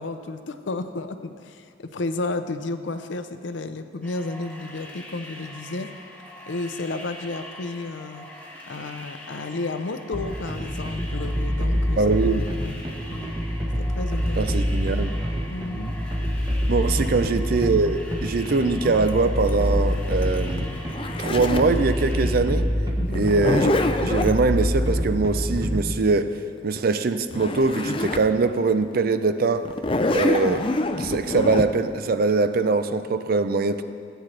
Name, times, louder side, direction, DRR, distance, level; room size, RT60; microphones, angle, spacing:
voice 1, 0.0-5.9 6.5-8.3 8.7-12.0 12.6-12.7 13.1-13.3 13.8-14.5 15.5-16.0 17.0-17.4 23.0-23.3, left 2 dB, 75° left, 9 dB, 0.6 m, -32 dB
sound 1, 4.0-22.3, equal, 5° left, 1.1 m, -43 dB
sound 2, 10.1-26.0, equal, 20° right, 1.2 m, -26 dB
voice 2, 12.0-12.5 14.4-15.1 16.7-20.7 21.2-22.7 23.1-26.3 26.6-29.7 30.1-30.7 31.0-33.8, right 3 dB, 50° right, 11 dB, 0.4 m, -22 dB
Zipper (clothing), 19.1-21.8 23.1-24.4 27.0-27.1 27.3-28.3 28.8-28.9 29.7-31.7, left 2 dB, 30° left, 0.4 m, -25 dB
16.5 x 9.1 x 3.3 m, 2.3 s
head